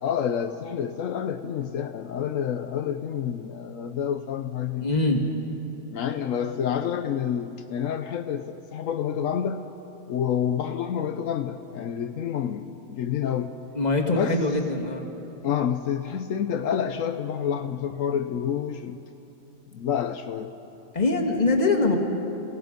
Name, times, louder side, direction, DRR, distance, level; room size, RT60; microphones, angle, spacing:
voice 1, 0.0-4.9 5.9-9.6 10.1-13.5 14.1-14.4 15.4-19.0 19.7-20.5, left 8 dB, 80° left, 8 dB, 1.1 m, -28 dB
voice 2, 4.8-5.2 13.8-15.1 20.9-22.0, left 2 dB, 35° left, 1 dB, 1.9 m, -23 dB
29.0 x 17.5 x 5.2 m, 3.0 s
omnidirectional pair, 1.4 m